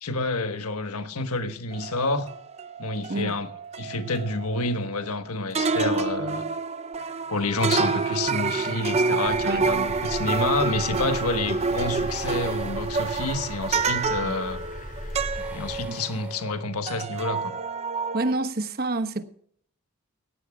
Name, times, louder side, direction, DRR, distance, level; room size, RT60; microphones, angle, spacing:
voice 1, 0.0-2.3 2.8-3.5 3.8-6.5 7.3-14.6 15.5-17.6, left 2 dB, 90° left, 1.3 m, -29 dB
sound 1, 1.7-5.2 5.5-16.6 16.8-18.4, right 4 dB, 30° right, 0.6 m, -28 dB
sound 2, 9.2-15.9, left 1 dB, 35° left, 6.6 m, -38 dB
sound 3, 12.1-13.5 15.2-17.0, right 1 dB, 5° right, 2.8 m, -48 dB
voice 2, 18.1-19.2, right 2 dB, 45° right, 1.0 m, -28 dB
18.5 x 15.5 x 2.4 m
head